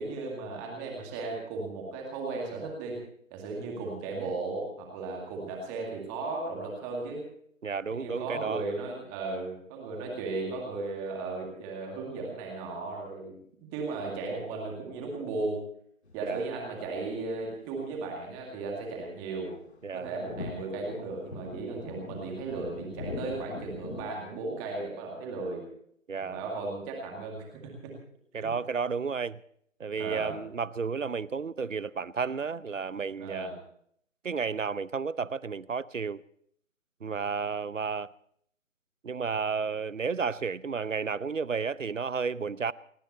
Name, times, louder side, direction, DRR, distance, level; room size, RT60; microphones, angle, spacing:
voice 1, 0.0-3.0 3.3-7.3 7.9-13.3 13.6-15.6 16.1-19.5 19.9-25.6 26.2-27.9 28.4-28.6 30.0-30.4 33.2-33.6, right 3 dB, 10° right, 2.1 m, -35 dB
voice 2, 7.6-8.6 16.2-16.5 19.8-20.1 26.1-26.4 28.3-29.4 29.8-33.5 34.2-36.2 37.0-38.1 39.0-42.7, right 5 dB, 70° right, 0.8 m, -32 dB
sound 1, 16.1-18.3 18.7-24.1, left 3 dB, 55° left, 2.0 m, -43 dB
29.5 x 10.0 x 4.3 m
figure-of-eight pair, 150°, 40 cm